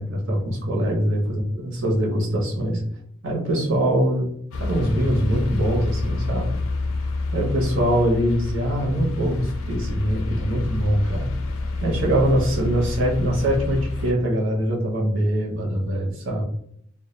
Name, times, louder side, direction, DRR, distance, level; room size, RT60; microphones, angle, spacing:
voice 1, 0.0-2.8 3.2-4.3 4.6-6.5 7.3-11.3 11.8-16.4, equal, 70° right, -1 dB, 0.7 m, -23 dB
sound 1, 4.5-14.1, left 2 dB, 85° left, 0.4 m, -28 dB
2.2 x 2.1 x 3.0 m, 0.68 s
head